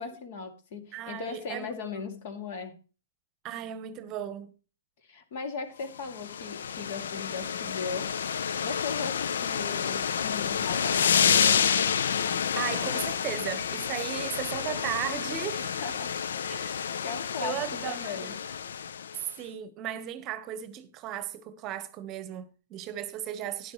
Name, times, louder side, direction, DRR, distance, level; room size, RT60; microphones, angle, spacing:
voice 1, 0.0-2.7 5.1-8.1 8.3-11.7 15.6-16.1 16.4-17.6 17.8-18.4, left 5 dB, 55° left, 2.3 m, -38 dB
voice 2, 0.9-2.0 3.4-4.5 12.5-15.8 16.5-16.8 17.4-18.4 19.4-23.7, right 11 dB, 35° right, 0.9 m, -36 dB
sound 1, 6.0-19.2, left 7 dB, 75° left, 0.5 m, -29 dB
12.5 x 10.0 x 3.1 m
hypercardioid pair, 125°, 0 cm